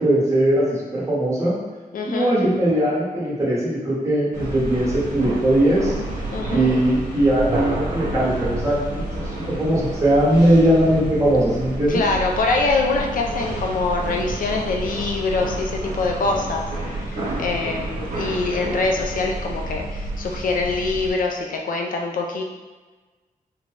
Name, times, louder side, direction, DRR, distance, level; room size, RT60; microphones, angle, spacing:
voice 1, 0.0-1.6 2.0-6.0 6.5-12.0, right 1 dB, 20° right, -7 dB, 1.0 m, -20 dB
voice 2, 1.9-2.3 6.3-6.7 11.9-22.4, left 3 dB, 65° left, 1 dB, 0.4 m, -24 dB
sound 1, 4.3-21.1, right 1 dB, 70° right, 1.1 m, -29 dB
3.8 x 2.2 x 3.2 m, 1.3 s
wide cardioid pair, 165°, 15 cm